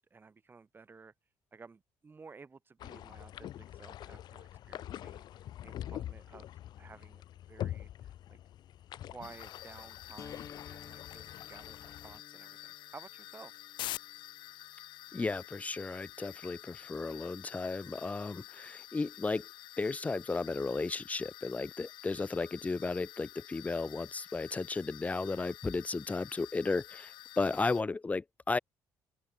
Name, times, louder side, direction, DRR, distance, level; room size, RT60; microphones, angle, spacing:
voice 1, 0.1-8.4 9.0-13.6, right 4 dB, 25° right, 6.1 m, -54 dB
sound 1, 2.8-12.2, left 12 dB, 65° left, 1.1 m, -45 dB
sound 2, 9.2-27.8, left 15 dB, 80° left, 4.7 m, -49 dB
sound 3, 10.2-16.1, left 7 dB, 45° left, 2.6 m, -55 dB
voice 2, 15.1-19.4 19.8-27.1 27.4-28.6, left 3 dB, 20° left, 0.6 m, -34 dB
cardioid pair, 110°, 8 cm